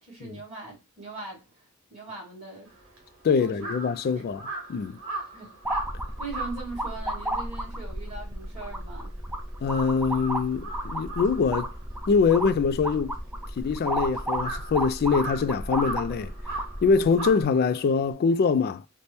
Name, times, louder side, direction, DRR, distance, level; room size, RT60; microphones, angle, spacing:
voice 1, 0.0-2.8 3.4-3.7 4.1-4.3 5.3-5.5 6.2-9.2, right 3 dB, 30° right, 2.0 m, -41 dB
Crow, 2.7-9.2 9.5-18.1, right 2 dB, 65° right, 1.4 m, -39 dB
voice 2, 3.2-5.0 9.6-11.7 12.1-13.2 13.6-16.3 16.8-18.8, left 5 dB, 45° left, 0.3 m, -24 dB
sound 1, 5.6-17.4, right 1 dB, 5° right, 0.5 m, -33 dB
4.2 x 2.1 x 3.3 m
head